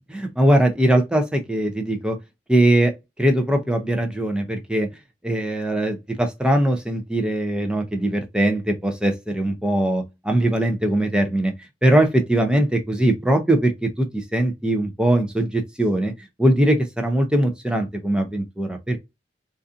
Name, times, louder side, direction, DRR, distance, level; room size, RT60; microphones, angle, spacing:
voice 1, 0.1-2.2 2.5-2.9 3.2-4.9 5.2-11.5 11.8-16.1 16.4-19.0, right 1 dB, 5° right, 0.4 m, -21 dB
2.5 x 2.3 x 2.4 m
head